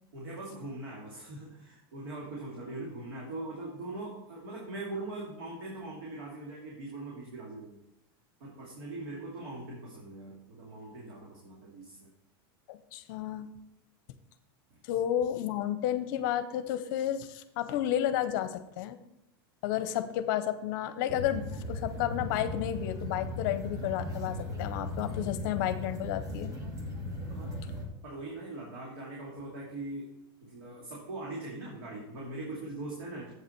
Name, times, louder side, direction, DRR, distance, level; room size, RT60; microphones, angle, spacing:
voice 1, 0.1-7.8 8.4-12.1 14.7-14.8 27.3-27.5 28.0-30.1 30.4-33.3, right 2 dB, 80° right, -4 dB, 2.5 m, -41 dB
voice 2, 12.7-13.5 14.8-19.0 19.6-26.5, left 11 dB, 60° left, 12 dB, 0.7 m, -32 dB
sound 1, 21.1-27.9, left 1 dB, 30° right, 1.4 m, -37 dB
8.0 x 5.9 x 4.5 m, 0.87 s
supercardioid pair, 140°, 12 cm